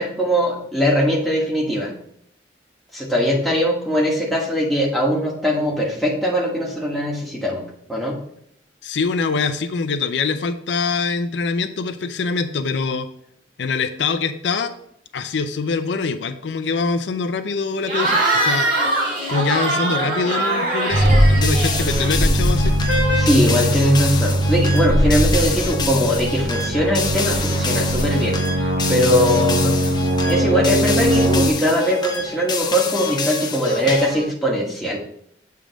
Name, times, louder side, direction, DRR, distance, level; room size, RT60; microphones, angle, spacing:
voice 1, 0.0-1.9 2.9-7.6 7.9-8.1 23.2-28.6 28.9-29.7 30.3-35.0, equal, ahead, -4 dB, 1.3 m, -20 dB
voice 2, 8.8-13.1 13.6-14.7 15.1-18.7 19.3-22.8, left 4 dB, 80° left, 9 dB, 0.5 m, -24 dB
Cheering / Crowd, 17.8-22.5, right 2 dB, 45° right, 2.2 m, -22 dB
sound 1, 20.9-31.5, equal, 85° right, 1.0 m, -20 dB
sound 2, 21.4-34.3, left 4 dB, 25° left, 0.6 m, -28 dB
7.5 x 3.5 x 5.0 m, 0.70 s
head